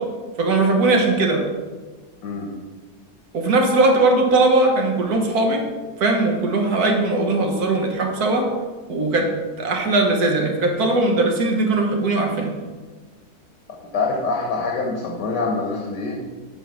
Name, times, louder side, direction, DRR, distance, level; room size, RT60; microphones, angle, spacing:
voice 1, 0.4-1.4 3.3-5.6 6.0-8.5 8.9-9.3 9.6-12.5, right 2 dB, 65° right, 3 dB, 1.6 m, -19 dB
voice 2, 13.9-16.2, left 3 dB, 85° left, 0 dB, 1.7 m, -25 dB
7.8 x 4.6 x 6.4 m, 1.4 s
omnidirectional pair, 1.8 m